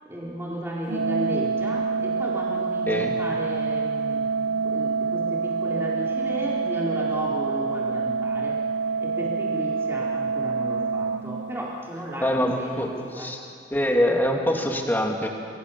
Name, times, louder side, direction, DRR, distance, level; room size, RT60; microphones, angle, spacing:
voice 1, 0.0-8.6 9.0-13.4, equal, 15° right, -5 dB, 3.9 m, -34 dB
Organ, 0.9-11.9, right 5 dB, 80° right, 0.6 m, -27 dB
voice 2, 12.2-13.4 13.7-15.3, equal, 10° left, 1 dB, 2.6 m, -24 dB
28.5 x 22.0 x 7.1 m, 2.3 s
head